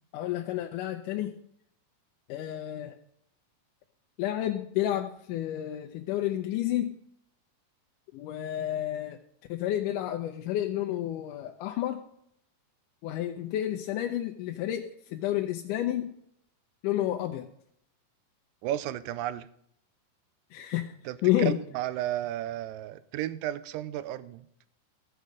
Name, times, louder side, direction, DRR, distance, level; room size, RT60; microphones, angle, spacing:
voice 1, 0.1-1.3 2.3-2.9 4.2-7.0 8.1-9.2 9.5-12.0 13.0-16.1 16.8-17.5 20.5-21.0 21.2-21.6, left 13 dB, 80° left, 4 dB, 2.0 m, -30 dB
voice 2, 18.6-19.5 21.1-24.4, right 13 dB, 80° right, 16 dB, 2.2 m, -33 dB
15.0 x 6.8 x 5.1 m, 0.72 s
omnidirectional pair, 4.1 m